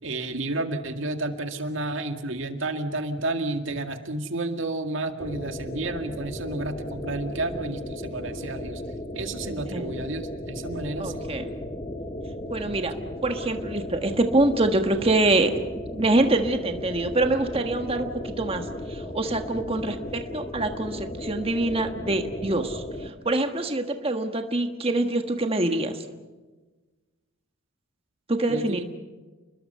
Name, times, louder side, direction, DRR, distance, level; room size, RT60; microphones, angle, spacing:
voice 1, 0.0-11.4 28.5-28.8, right 2 dB, 65° right, 6 dB, 2.1 m, -31 dB
sound 1, 5.2-23.1, left 1 dB, 25° left, 1.6 m, -36 dB
voice 2, 9.4-9.9 11.0-11.5 12.5-12.9 13.2-15.5 15.9-26.0 28.3-28.8, right 2 dB, 30° right, 6 dB, 1.5 m, -25 dB
30.0 x 21.0 x 5.6 m, 1.3 s
head